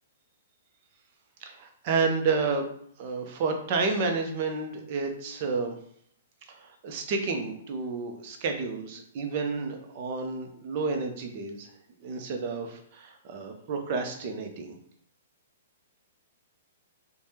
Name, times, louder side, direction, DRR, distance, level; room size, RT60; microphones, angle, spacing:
voice 1, 1.4-2.6 3.0-5.7 6.5-11.7 12.0-14.8, right 4 dB, 45° right, 4 dB, 0.6 m, -30 dB
3.3 x 2.1 x 2.8 m, 0.65 s
hypercardioid pair, 125°, 0 cm